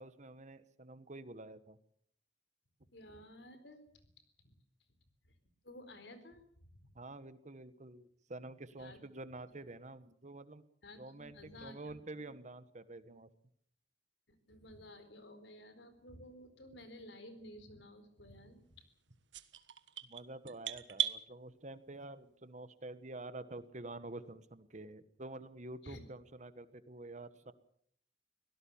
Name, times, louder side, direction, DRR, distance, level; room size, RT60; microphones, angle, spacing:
voice 1, 0.0-1.8 6.9-10.6 11.0-13.3 20.0-27.5, right 2 dB, 40° right, 13 dB, 1.3 m, -48 dB
voice 2, 2.9-3.8 4.4-4.5 5.6-6.4 6.9-7.0 8.8-9.0 10.8-11.9 14.3-18.6 25.8-26.0, left 1 dB, 70° left, 10 dB, 4.2 m, -53 dB
sound 1, 19.3-21.2, right 11 dB, 85° right, 1.4 m, -37 dB
24.0 x 17.5 x 7.2 m, 0.63 s
head